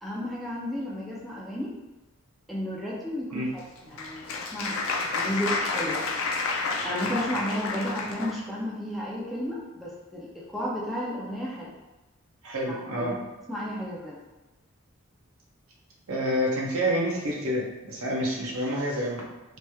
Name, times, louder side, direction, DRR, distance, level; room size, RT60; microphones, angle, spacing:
voice 1, 0.0-1.7 2.5-4.8 5.1-6.0 6.8-11.7 12.7-13.2 13.5-14.2, equal, ahead, -6 dB, 0.4 m, -33 dB
Applause, 3.6-8.4, left 3 dB, 70° left, 0.4 m, -30 dB
voice 2, 12.4-13.2 16.1-19.2, equal, 85° right, -2 dB, 0.7 m, -28 dB
3.2 x 2.9 x 2.2 m, 1.1 s
head